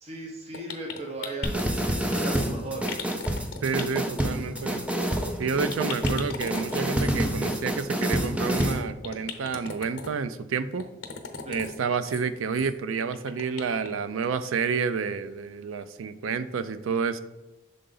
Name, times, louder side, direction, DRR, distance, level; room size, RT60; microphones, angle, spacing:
voice 1, 0.0-2.9 11.4-11.7, right 2 dB, 30° right, -1 dB, 0.8 m, -37 dB
sound 1, 0.5-1.9 2.9-4.2 4.5-4.8 5.0-5.1 5.4-5.5 5.7-7.1 8.0-8.6 9.0-10.1 10.8-11.8 12.0-12.2 12.5-12.7 13.0-13.9 14.2-14.3 14.7-14.8, left 5 dB, 55° left, 0.8 m, -38 dB
sound 2, 1.4-8.8, right 1 dB, 5° right, 0.3 m, -28 dB
voice 2, 3.6-4.9 5.4-10.9 11.5-17.2, right 5 dB, 85° right, 13 dB, 0.4 m, -29 dB
6.6 x 3.9 x 3.8 m, 1.0 s
head